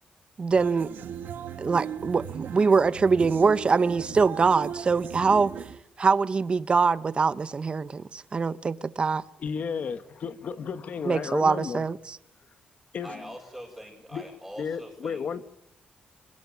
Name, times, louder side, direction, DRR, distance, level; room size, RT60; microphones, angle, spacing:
voice 1, 0.4-0.9 1.6-5.5 6.0-9.2 11.0-12.2, right 4 dB, 35° right, 1.1 m, -23 dB
sound 1, 0.5-5.8, right 9 dB, 90° right, 1.6 m, -38 dB
voice 2, 9.4-11.8 12.9-13.2 14.1-14.3 14.6-15.4, left 6 dB, 55° left, 1.3 m, -33 dB
voice 3, 13.0-15.3, equal, ahead, 6.9 m, -43 dB
26.0 x 21.5 x 9.6 m
cardioid pair, 130°, 3 cm